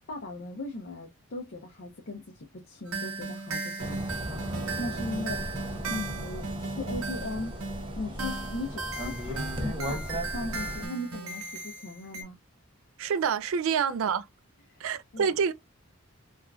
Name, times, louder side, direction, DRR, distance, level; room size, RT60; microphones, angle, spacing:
voice 1, 0.1-5.4 5.8-7.5 8.0-12.4 13.7-13.8 14.7-14.8 15.1-15.4, left 2 dB, 50° left, 0.5 m, -38 dB
sound 1, 2.9-12.2, right 3 dB, 90° right, 0.8 m, -36 dB
sound 2, 3.8-10.9, equal, 25° right, 0.6 m, -36 dB
voice 2, 13.0-14.2 14.8-15.5, right 6 dB, 70° right, 0.3 m, -27 dB
3.4 x 2.4 x 2.2 m
head